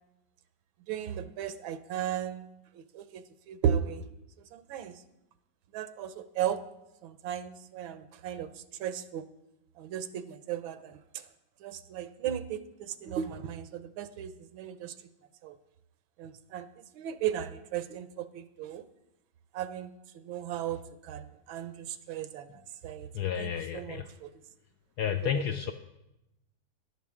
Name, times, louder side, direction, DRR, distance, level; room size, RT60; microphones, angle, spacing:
voice 1, 0.9-2.5 2.7-4.0 4.5-5.0 5.7-6.6 7.0-9.3 9.8-11.2 11.6-14.9 15.4-15.5 16.2-18.8 19.5-23.1 23.4-24.3 25.2-25.4, right 9 dB, 80° right, 12 dB, 1.5 m, -36 dB
voice 2, 23.1-24.0 25.0-25.7, left 9 dB, 75° left, 8 dB, 0.9 m, -31 dB
13.5 x 11.0 x 3.7 m, 0.91 s
omnidirectional pair, 2.2 m